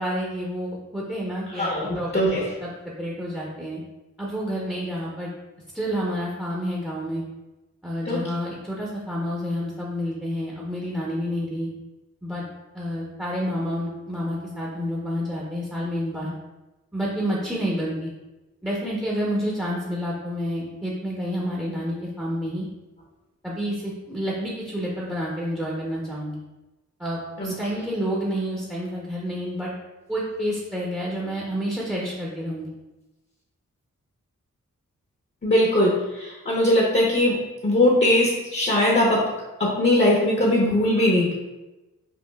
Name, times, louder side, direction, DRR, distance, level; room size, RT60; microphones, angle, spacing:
voice 1, 0.0-1.7 1.9-2.7 3.0-3.8 4.2-5.3 5.7-7.2 7.8-11.7 12.2-12.4 12.7-16.3 16.9-18.1 18.6-22.7 23.4-26.4 27.0-29.7 30.1-32.7, equal, 5° right, -4 dB, 0.7 m, -29 dB
voice 2, 1.6-2.4 8.1-8.2 27.4-27.5 35.4-39.3 39.6-41.3, left 1 dB, 35° left, -3 dB, 0.8 m, -20 dB
5.4 x 2.4 x 2.3 m, 1.1 s
wide cardioid pair, 70°, 31 cm